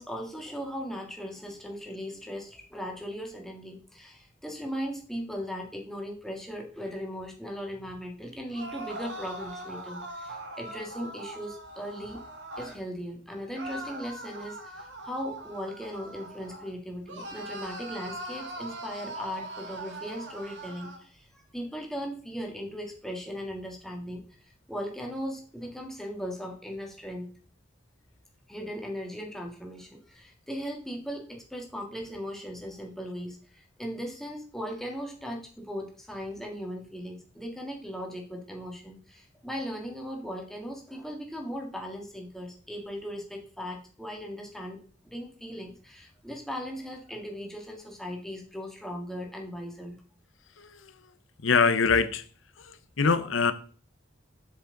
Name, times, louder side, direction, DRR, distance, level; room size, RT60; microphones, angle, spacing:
voice 1, 0.0-12.2 12.6-27.3 28.5-50.0, equal, ahead, 1.7 m, -38 dB
sound 1, 8.5-12.8 13.5-16.7 17.1-21.0, right 1 dB, 65° right, 1.5 m, -41 dB
voice 2, 50.6-50.9 51.4-52.2 52.6-53.5, left 5 dB, 85° left, 0.8 m, -24 dB
7.5 x 7.3 x 3.9 m
head